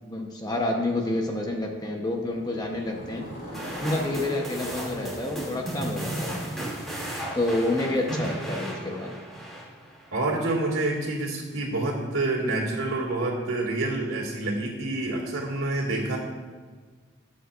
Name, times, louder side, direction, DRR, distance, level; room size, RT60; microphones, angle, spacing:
voice 1, 0.0-3.3 3.8-6.5 7.3-9.1, left 2 dB, 20° left, 1 dB, 1.0 m, -29 dB
Motorcycle, 2.0-10.1, equal, 45° left, 2.8 m, -42 dB
sound 1, 3.5-10.1, right 1 dB, ahead, 2.6 m, -34 dB
voice 2, 10.1-16.2, right 2 dB, 85° right, -8 dB, 2.3 m, -27 dB
19.0 x 8.2 x 2.5 m, 1.5 s
head